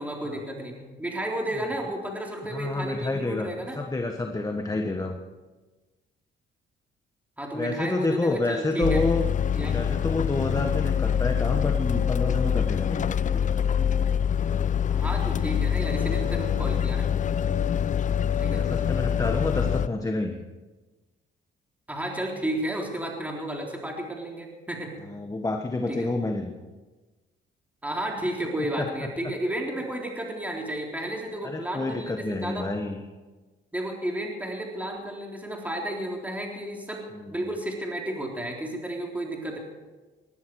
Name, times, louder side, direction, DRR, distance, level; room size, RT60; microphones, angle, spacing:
voice 1, 0.0-3.8 7.4-9.0 9.5-9.8 14.9-17.1 18.4-18.7 21.9-25.0 25.9-26.1 27.8-32.7 33.7-39.6, right 1 dB, 5° right, -1 dB, 3.6 m, -32 dB
voice 2, 2.5-3.5 3.8-5.2 7.5-9.3 9.7-13.5 18.5-20.4 25.1-26.7 28.8-28.9 31.4-33.0 37.1-37.5, left 2 dB, 15° left, 4 dB, 1.3 m, -29 dB
sound 1, 8.8-19.9, left 8 dB, 40° left, 0.5 m, -25 dB
20.0 x 14.5 x 4.8 m, 1.2 s
cardioid pair, 90°, 20 cm